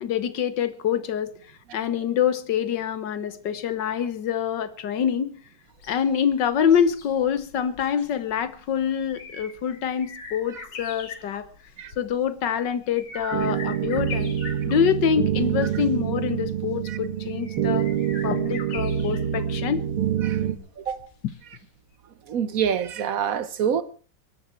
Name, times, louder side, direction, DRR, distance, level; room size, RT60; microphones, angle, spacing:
voice 1, 0.0-1.3 1.7-5.3 5.9-11.5 12.0-14.3 14.7-17.9 18.2-19.8, left 8 dB, 60° left, 1.6 m, -25 dB
sound 1, 5.7-21.6 21.9-22.0, left 6 dB, 80° left, 3.0 m, -44 dB
sound 2, 13.3-20.6, right 10 dB, 85° right, 2.5 m, -26 dB
voice 2, 20.8-21.1 22.3-23.8, right 8 dB, 60° right, 1.0 m, -27 dB
21.0 x 12.0 x 4.5 m
omnidirectional pair, 2.4 m